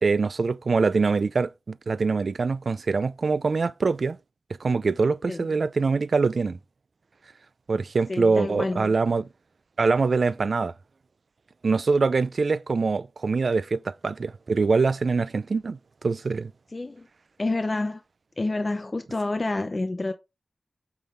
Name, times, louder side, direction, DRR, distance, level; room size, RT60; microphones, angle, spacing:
voice 1, 0.0-4.2 4.6-6.6 7.7-9.3 9.8-10.7 11.6-16.5, right 4 dB, 70° right, 0.4 m, -24 dB
voice 2, 8.1-9.0 16.7-17.1 17.4-18.0 18.4-20.1, left 2 dB, 40° left, 0.7 m, -28 dB
8.6 x 3.8 x 4.5 m
wide cardioid pair, 70°, 0 cm